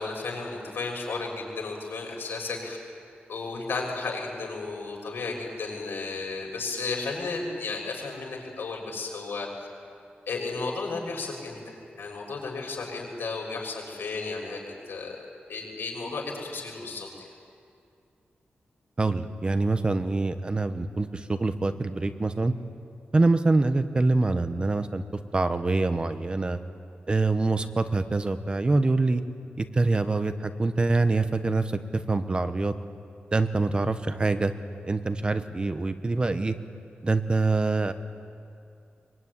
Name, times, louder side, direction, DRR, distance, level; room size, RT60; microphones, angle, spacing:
voice 1, 0.0-2.8 3.3-9.7 10.3-17.1, left 3 dB, 85° left, -1 dB, 6.7 m, -34 dB
voice 2, 19.0-22.5 23.1-25.0 25.3-26.6 27.1-29.2 29.6-31.8 32.1-32.7 33.3-34.5 34.8-36.5 37.0-37.9, right 3 dB, 25° right, 9 dB, 1.1 m, -25 dB
24.0 x 23.5 x 9.8 m, 2.4 s
wide cardioid pair, 145°, 4 cm